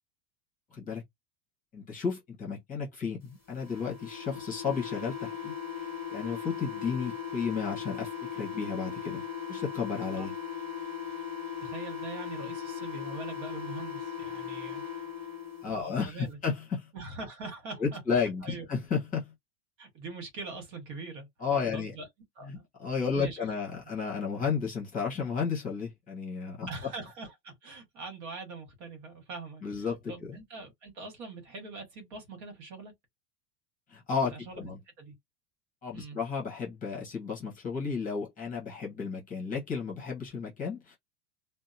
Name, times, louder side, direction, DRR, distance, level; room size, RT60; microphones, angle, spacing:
voice 1, 0.7-1.0 1.7-9.2 9.5-10.3 15.6-16.9 17.8-19.3 21.4-21.9 22.4-26.7 29.6-30.4 33.9-34.8 35.8-41.0, left 5 dB, 15° left, 1.0 m, -33 dB
sound 1, 3.6-15.6, left 7 dB, 5° right, 1.1 m, -38 dB
voice 2, 11.6-15.1 15.7-16.4 16.9-18.6 19.8-22.1 22.3-22.6 23.1-23.5 26.7-32.9 34.3-34.7 35.0-35.1 35.9-36.2, right 3 dB, 50° right, 1.4 m, -43 dB
2.8 x 2.1 x 2.6 m
supercardioid pair, 170°, 47 cm